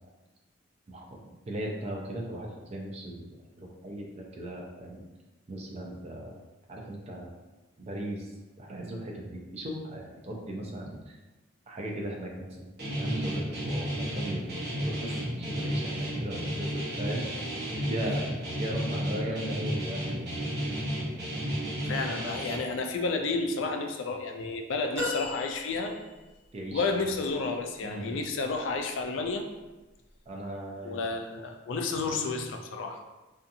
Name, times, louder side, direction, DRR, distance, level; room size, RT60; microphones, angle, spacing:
voice 1, 1.5-3.3 3.6-5.0 5.5-6.4 6.7-7.4 7.8-8.3 8.6-11.1 11.7-14.5 14.8-17.3 17.9-20.5 26.5-27.1 27.8-28.1 30.3-31.0, right 1 dB, 30° right, -1 dB, 0.4 m, -37 dB
Guitar, 12.8-22.6, equal, 55° right, 0.8 m, -32 dB
voice 2, 21.9-26.0 26.7-29.5 30.8-33.0, left 3 dB, 70° left, 4 dB, 0.3 m, -31 dB
sound 1, 24.9-26.4 27.1-27.2, left 2 dB, 15° right, 0.8 m, -35 dB
2.7 x 2.4 x 2.6 m, 1.1 s
head